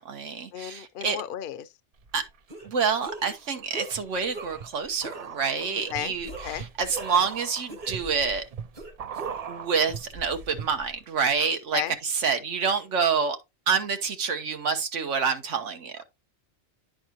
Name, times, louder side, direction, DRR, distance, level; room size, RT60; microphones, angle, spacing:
voice 1, 0.0-1.2 2.1-2.2 2.6-6.3 6.5-8.4 9.5-11.8 12.1-13.4 13.7-16.0, right 6 dB, 90° right, 1.4 m, -27 dB
voice 2, 0.5-1.7 5.7-6.1 6.4-6.6 11.7-11.9, left 11 dB, 60° left, 0.6 m, -34 dB
sound 1, 2.0-2.7 3.2-11.0 11.3-11.4, right 7 dB, 60° right, 0.4 m, -41 dB
sound 2, 2.5-2.7 3.0-3.4 3.7-4.0 4.3-4.7 5.0-5.3 5.8-5.9 6.2-7.4 7.7-8.3 8.7-9.7, right 3 dB, 40° right, 1.1 m, -40 dB
10.5 x 4.2 x 2.8 m
omnidirectional pair, 1.2 m